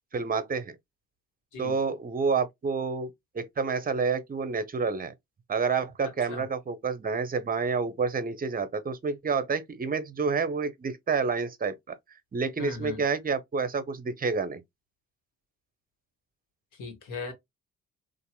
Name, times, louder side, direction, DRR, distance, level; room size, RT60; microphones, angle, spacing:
voice 1, 0.1-0.8 1.6-5.1 5.5-12.0 12.3-14.6, right 5 dB, 25° right, 0.8 m, -29 dB
voice 2, 6.0-6.4 12.6-13.1 16.8-17.3, left 3 dB, 65° left, 1.5 m, -38 dB
2.8 x 2.6 x 2.2 m
hypercardioid pair, 50°, 34 cm